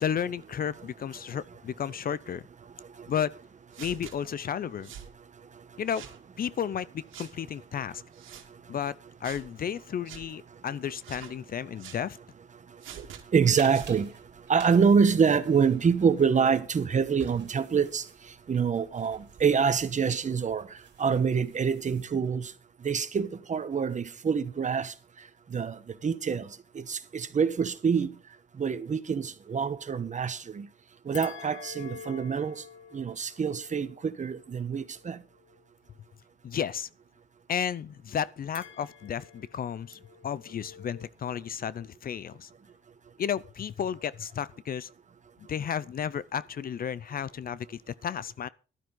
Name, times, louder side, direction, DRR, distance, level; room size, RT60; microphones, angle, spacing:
voice 1, 0.0-2.4 3.1-3.3 3.8-4.9 5.8-6.0 6.4-8.0 8.7-8.9 9.2-12.2 36.4-36.9 37.5-42.5 43.2-44.9 45.5-48.5, left 8 dB, 45° left, 0.6 m, -33 dB
blowgun - pipeblow - dart shotting, 3.7-4.1 4.8-5.1 5.8-6.2 7.1-7.3 8.1-8.5 9.2-9.5 10.0-10.2 11.0-11.3 11.8-12.0 12.8-13.2 13.7-14.0, right 9 dB, 80° right, 2.0 m, -45 dB
voice 2, 13.3-14.1 14.5-18.1 18.5-22.5 22.8-24.9 25.5-26.5 26.7-28.1 28.6-30.7 31.0-32.6 32.9-35.2, right 6 dB, 40° right, 1.2 m, -26 dB
Sweeping Floor, 13.5-22.1, right 7 dB, 60° right, 2.6 m, -51 dB
sound 1, 31.1-35.6 38.5-41.1, left 8 dB, 70° left, 1.4 m, -48 dB
13.5 x 12.0 x 3.9 m
cardioid pair, 90°, 20 cm